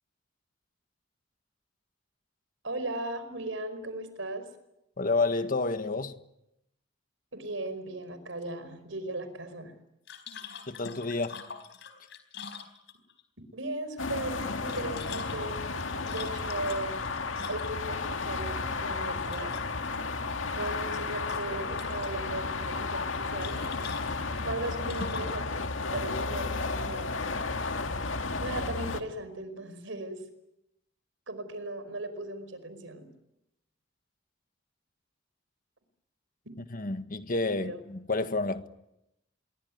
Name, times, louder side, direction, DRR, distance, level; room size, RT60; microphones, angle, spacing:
voice 1, 2.6-4.5 7.3-9.7 13.5-15.6 16.1-17.0 17.5-19.5 20.5-23.6 24.4-25.6 25.9-27.3 28.4-30.2 31.3-33.1 37.6-37.8, right 2 dB, 80° right, 5.1 m, -37 dB
voice 2, 5.0-6.1 10.7-11.4 36.7-38.7, left 3 dB, 45° left, 1.6 m, -29 dB
sound 1, 10.1-13.2 14.5-17.9 19.2-20.0 20.3-21.0 21.3-22.1 23.4-25.4, left 5 dB, 65° left, 4.3 m, -44 dB
sound 2, 14.0-29.0, left 3 dB, 85° left, 2.0 m, -33 dB
26.0 x 23.5 x 9.5 m
head